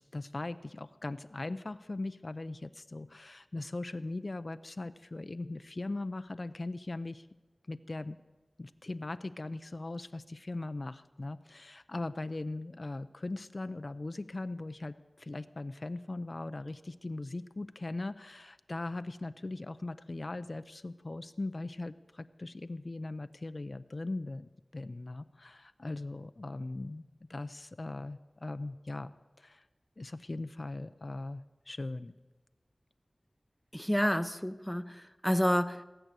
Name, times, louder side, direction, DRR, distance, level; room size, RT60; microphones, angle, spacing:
voice 1, 0.0-7.3 7.7-8.2 8.6-27.0 27.3-29.6 30.0-32.1, left 2 dB, 50° left, 12 dB, 0.5 m, -39 dB
voice 2, 33.7-35.8, equal, 5° left, 11 dB, 0.7 m, -29 dB
19.0 x 8.9 x 8.1 m, 1.2 s
wide cardioid pair, 70°, 0 cm